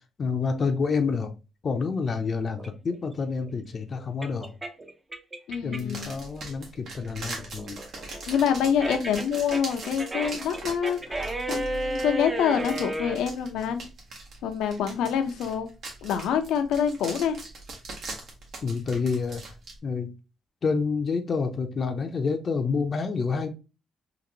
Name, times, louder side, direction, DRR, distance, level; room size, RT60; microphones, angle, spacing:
voice 1, 0.2-1.3 1.6-4.5 5.6-7.8 18.6-19.4 19.8-20.1 20.6-23.5, left 5 dB, 45° left, 0.6 m, -28 dB
sound 1, 2.6-6.0 6.4-13.2, right 1 dB, 20° right, 0.7 m, -33 dB
voice 2, 5.5-6.1 8.3-11.1 11.5-13.9 14.4-15.7 16.0-17.4, left 8 dB, 85° left, 0.6 m, -26 dB
sound 2, 5.7-19.8, right 3 dB, 65° right, 1.3 m, -41 dB
3.9 x 2.5 x 2.8 m
cardioid pair, 90°, 0 cm